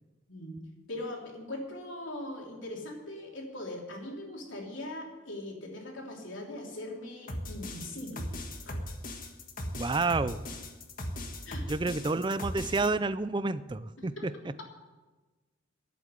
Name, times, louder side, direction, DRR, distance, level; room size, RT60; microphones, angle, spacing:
voice 1, 0.9-8.3 8.6-8.8 11.5-11.6 14.0-14.2, left 1 dB, 70° left, -1 dB, 3.2 m, -40 dB
sound 1, 7.3-12.9, left 1 dB, 45° left, 1.6 m, -38 dB
voice 2, 9.7-10.4 11.6-14.5, right 3 dB, 25° right, 14 dB, 0.4 m, -30 dB
11.5 x 8.3 x 9.7 m, 1.2 s
head